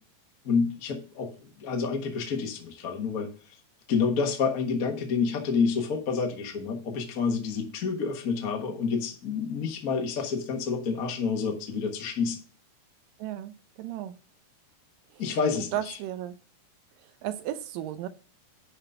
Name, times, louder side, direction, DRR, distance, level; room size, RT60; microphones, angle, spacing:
voice 1, 0.4-3.3 3.9-12.4 15.2-16.0, left 5 dB, 60° left, 2 dB, 0.9 m, -28 dB
voice 2, 13.2-14.2 15.1-15.2 15.7-16.3 17.2-18.1, right 12 dB, 80° right, 11 dB, 2.4 m, -34 dB
10.5 x 4.0 x 5.6 m, 0.37 s
omnidirectional pair, 4.0 m